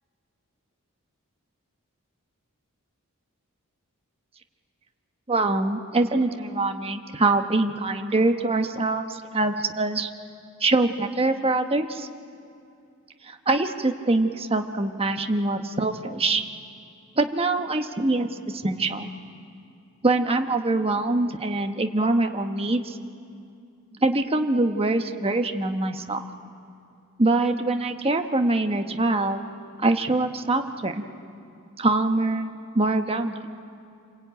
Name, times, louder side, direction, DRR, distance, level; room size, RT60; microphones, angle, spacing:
voice 1, 5.3-10.1 10.6-12.1 13.2-16.4 17.2-19.1 20.0-23.0 24.0-26.2 27.2-29.5 29.8-31.0 31.8-33.6, right 2 dB, 25° right, 6 dB, 1.2 m, -24 dB
28.0 x 21.5 x 9.2 m, 2.5 s
head